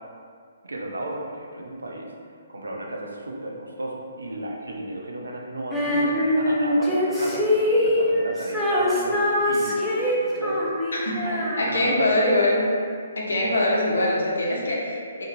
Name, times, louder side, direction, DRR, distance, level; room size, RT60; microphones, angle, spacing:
voice 1, 0.6-2.1 2.5-10.7 11.2-12.2 13.4-13.5, right 1 dB, 85° right, -1 dB, 0.5 m, -34 dB
Female singing, 5.7-12.2, left 1 dB, ahead, 0.4 m, -23 dB
voice 2, 10.9-11.2 11.6-12.6 13.2-15.2, left 1 dB, 75° left, -3 dB, 0.7 m, -23 dB
2.7 x 2.6 x 2.5 m, 2.2 s
figure-of-eight pair, 135°, 0 cm